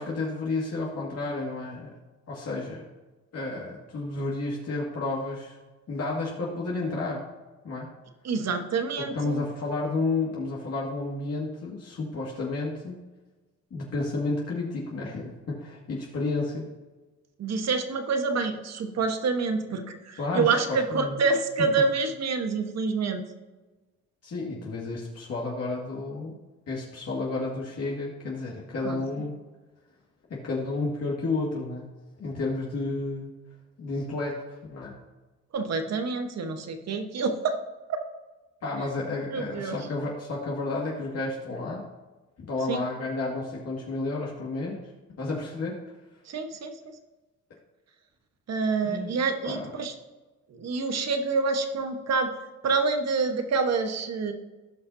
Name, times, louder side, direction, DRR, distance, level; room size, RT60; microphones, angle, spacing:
voice 1, 0.0-1.9 2.3-2.8 3.3-5.6 5.9-7.2 7.6-7.9 9.1-13.0 13.7-16.7 20.2-21.2 24.2-26.3 26.7-29.4 30.3-31.9 32.2-33.3 33.8-34.4 34.7-35.0 38.6-41.9 42.4-44.8 45.2-45.8 48.8-49.2 49.4-49.7, left 3 dB, 55° left, -4 dB, 2.0 m, -31 dB
voice 2, 8.2-9.4 17.4-23.2 28.8-29.2 35.5-37.6 37.9-38.0 39.3-39.9 42.7-42.8 46.3-46.9 48.5-49.9 50.5-52.3 52.6-54.3, right 4 dB, 60° right, 6 dB, 1.3 m, -27 dB
17.0 x 5.7 x 2.8 m, 1.2 s
cardioid pair, 90°, 30 cm